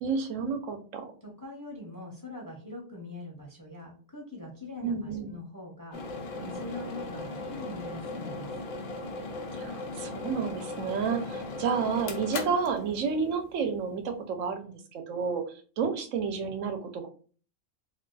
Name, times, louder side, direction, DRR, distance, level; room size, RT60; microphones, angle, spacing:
voice 1, 0.0-1.0 4.8-5.4 9.5-15.4 15.8-17.1, right 6 dB, 85° right, 6 dB, 1.0 m, -30 dB
voice 2, 1.2-8.6, left 2 dB, 20° left, -2 dB, 0.6 m, -43 dB
sound 1, 5.9-13.6, left 2 dB, 55° left, 0.7 m, -38 dB
2.6 x 2.3 x 3.7 m, 0.41 s
omnidirectional pair, 1.3 m